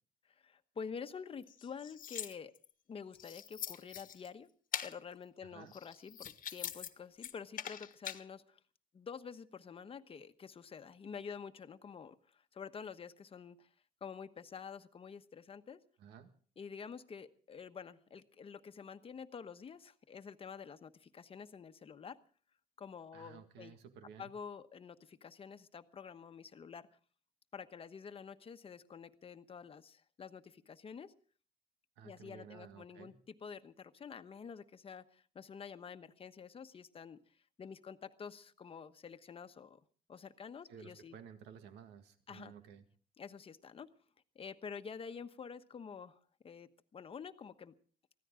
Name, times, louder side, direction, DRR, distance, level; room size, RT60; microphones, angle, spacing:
voice 1, 0.3-2.5 2.9-4.5 4.8-8.6 8.9-13.7 14.0-15.8 16.6-22.2 22.8-23.7 24.2-26.9 27.5-31.1 32.0-37.2 37.6-39.8 40.1-41.1 42.3-42.5 43.2-43.9 44.3-47.7, left 6 dB, 35° left, 10 dB, 1.2 m, -48 dB
sound 1, 1.4-2.7 3.1-4.3 4.7-4.9 5.7-6.9 7.2-8.2, left 10 dB, 55° left, 1.4 m, -43 dB
voice 2, 5.4-5.7 16.0-16.3 23.1-24.3 32.0-33.1 40.7-42.8, right 8 dB, 85° right, 7 dB, 1.8 m, -54 dB
24.0 x 15.5 x 3.8 m, 0.43 s
cardioid pair, 110°, 17 cm